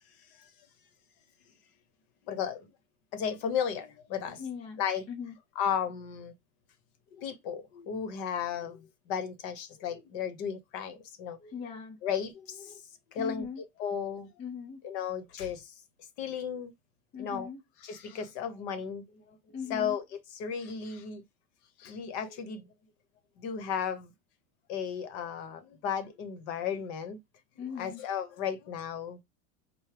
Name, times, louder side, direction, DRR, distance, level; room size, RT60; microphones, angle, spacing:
voice 1, 2.2-2.7 3.1-4.4 4.8-5.0 5.6-6.3 7.1-11.7 12.0-13.5 13.8-14.3 14.8-15.7 16.2-16.7 17.2-17.5 17.8-19.4 19.7-20.0 20.3-21.2 21.8-22.7 23.4-24.1 24.7-27.2 27.8-29.2, left 7 dB, 50° left, 1.0 m, -34 dB
voice 2, 4.4-4.8 5.1-5.3 11.5-12.0 13.2-13.6 14.4-14.8 17.1-17.6 19.5-20.0 27.6-28.0, left 6 dB, 15° left, 0.3 m, -39 dB
4.6 x 2.2 x 3.3 m
supercardioid pair, 140°, 39 cm